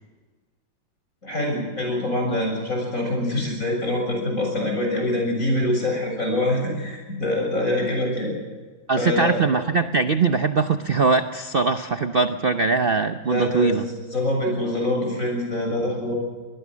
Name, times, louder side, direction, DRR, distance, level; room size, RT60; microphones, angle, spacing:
voice 1, 1.2-8.3 9.0-9.3 13.3-16.2, left 1 dB, 40° left, 1 dB, 7.3 m, -25 dB
voice 2, 8.9-13.8, right 4 dB, 85° right, 9 dB, 0.5 m, -21 dB
24.0 x 20.0 x 6.4 m, 1.3 s
omnidirectional pair, 2.2 m